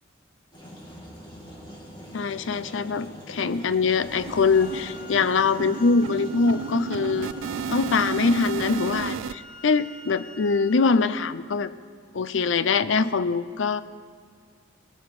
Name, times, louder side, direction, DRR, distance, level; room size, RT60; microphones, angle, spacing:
sound 1, 0.5-8.9, equal, 25° left, 2.6 m, -42 dB
voice 1, 2.1-7.3 7.7-11.7 12.1-13.8, left 4 dB, 75° left, 15 dB, 0.5 m, -23 dB
sound 2, 2.1-2.2 2.5-2.6 2.9-3.1 3.4-9.3, right 6 dB, 80° right, 0.3 m, -33 dB
Wind instrument woodwind instrument, 4.5-11.2, left 2 dB, 45° left, 1.1 m, -47 dB
20.0 x 10.0 x 4.9 m, 2.1 s
head